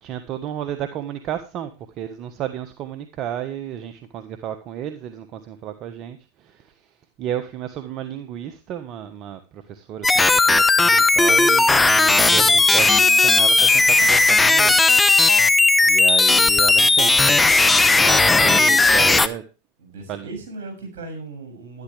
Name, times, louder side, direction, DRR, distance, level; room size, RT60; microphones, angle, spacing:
voice 1, 0.0-6.9 7.2-11.6 11.9-14.8 15.8-19.4 20.1-20.3, right 10 dB, 45° right, 9 dB, 1.3 m, -32 dB
sound 1, 10.0-19.3, left 3 dB, 10° left, 0.9 m, -16 dB
voice 2, 12.2-12.6 19.8-21.8, right 3 dB, 70° right, 5 dB, 6.8 m, -37 dB
12.0 x 11.5 x 3.4 m, 0.30 s
hypercardioid pair, 90°, 0 cm